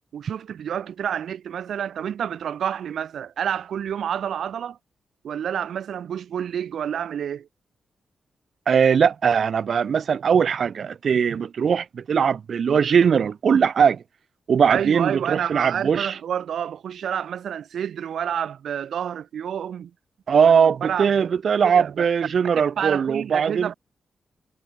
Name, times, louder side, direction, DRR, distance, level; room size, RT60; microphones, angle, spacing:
voice 1, 0.1-4.8 5.2-7.5 14.7-19.9 20.3-21.3 21.6-22.1 22.8-23.7, right 9 dB, 70° right, 1.5 m, -29 dB
voice 2, 8.7-14.0 14.5-16.1 20.3-23.7, right 7 dB, 50° right, 1.3 m, -20 dB
wide cardioid pair, 180°, 0 cm